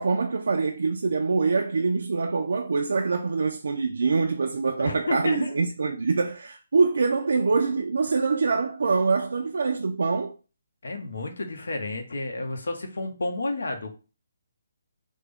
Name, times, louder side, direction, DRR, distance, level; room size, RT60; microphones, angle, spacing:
voice 1, 0.0-10.3, right 4 dB, 75° right, 0.4 m, -24 dB
voice 2, 4.8-5.7 10.8-13.9, left 2 dB, 85° left, 0.9 m, -31 dB
3.4 x 2.1 x 3.5 m
hypercardioid pair, 170°, 0 cm